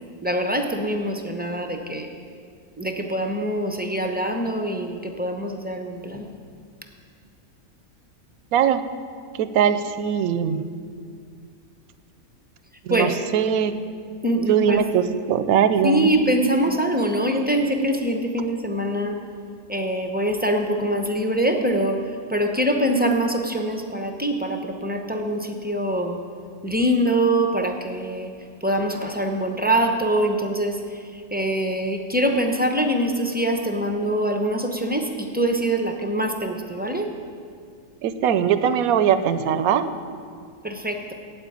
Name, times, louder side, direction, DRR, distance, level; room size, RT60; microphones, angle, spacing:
voice 1, 0.2-2.1 2.8-6.3 12.9-13.2 14.2-14.9 15.8-19.2 19.7-26.2 26.6-28.3 28.6-37.1 40.6-41.1, right 1 dB, 15° right, 4 dB, 0.3 m, -24 dB
voice 2, 8.5-8.8 9.4-10.7 12.9-13.1 13.3-13.8 14.5-16.1 38.0-39.9, right 8 dB, 80° right, 11 dB, 1.0 m, -20 dB
9.0 x 8.6 x 8.5 m, 2.2 s
omnidirectional pair, 1.5 m